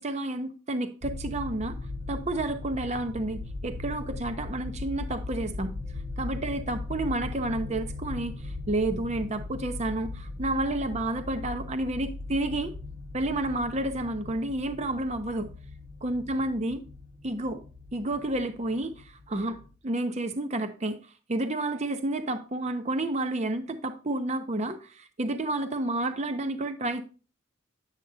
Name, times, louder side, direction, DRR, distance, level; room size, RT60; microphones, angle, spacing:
voice 1, 0.0-1.8 2.1-5.7 6.2-12.7 13.1-15.5 16.0-16.8 17.2-17.6 17.9-19.6 19.8-27.0, right 2 dB, 35° right, 0.7 m, -30 dB
sound 1, 1.0-19.7, left 2 dB, 50° right, 1.4 m, -39 dB
10.5 x 8.1 x 2.7 m
head